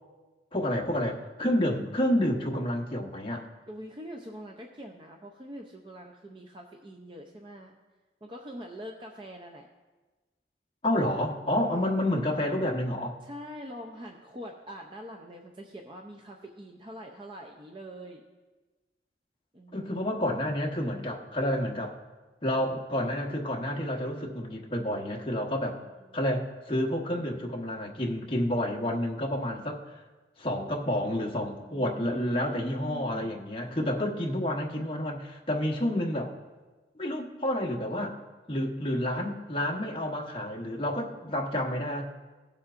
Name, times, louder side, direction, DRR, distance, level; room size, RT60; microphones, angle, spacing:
voice 1, 0.5-3.4 10.8-13.2 19.7-22.0 22.4-25.7 26.1-30.0 30.4-36.3 36.9-38.1 38.5-42.0, left 1 dB, 30° left, -1 dB, 1.1 m, -29 dB
voice 2, 3.7-7.8 8.2-9.7 11.5-12.2 13.2-18.2 19.5-19.9 25.6-26.2 31.6-33.4, equal, 25° right, 2 dB, 0.6 m, -44 dB
17.5 x 7.2 x 2.5 m, 1.3 s
head